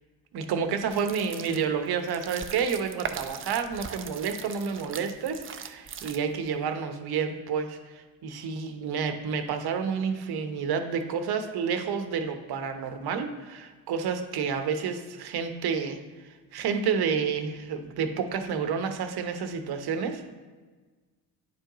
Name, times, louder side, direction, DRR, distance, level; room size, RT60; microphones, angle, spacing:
voice 1, 0.3-16.0 16.2-20.3, right 6 dB, 50° right, 7 dB, 1.0 m, -30 dB
sound 1, 0.8-6.5, right 7 dB, 25° right, 0.5 m, -40 dB
9.8 x 4.5 x 3.0 m, 1.3 s
hypercardioid pair, 55°, 48 cm